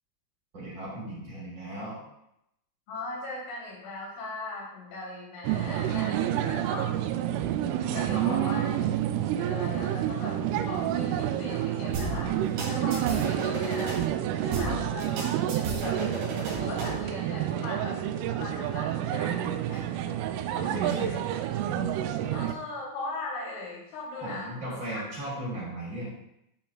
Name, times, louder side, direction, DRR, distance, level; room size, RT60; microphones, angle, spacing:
voice 1, 0.5-2.0 6.1-6.6 8.1-8.4 14.6-14.8 20.6-21.2 24.2-26.1, right 1 dB, 30° right, -7 dB, 3.6 m, -36 dB
voice 2, 2.9-6.2 6.4-6.9 7.8-8.7 9.4-12.4 12.7-14.0 14.3-15.2 15.8-16.1 16.6-18.0 18.4-19.9 22.3-25.1, left 2 dB, 80° left, -6 dB, 5.1 m, -39 dB
sound 1, 5.4-22.5, right 11 dB, 85° right, 3.1 m, -29 dB
sound 2, 11.9-14.0 14.5-17.0, right 1 dB, 70° right, 4.3 m, -34 dB
14.0 x 5.6 x 2.3 m, 0.81 s
omnidirectional pair, 5.6 m